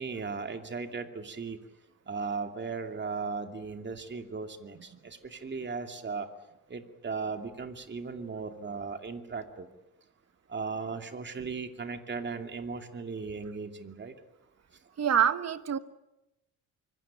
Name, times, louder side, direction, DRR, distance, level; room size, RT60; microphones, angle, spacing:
voice 1, 0.0-1.6 2.1-6.3 6.7-9.7 10.5-14.1, right 4 dB, 35° right, 6 dB, 2.6 m, -37 dB
voice 2, 15.0-15.8, right 9 dB, 50° right, 12 dB, 1.4 m, -25 dB
26.0 x 23.0 x 8.9 m, 0.92 s
cardioid pair, 140°, 34 cm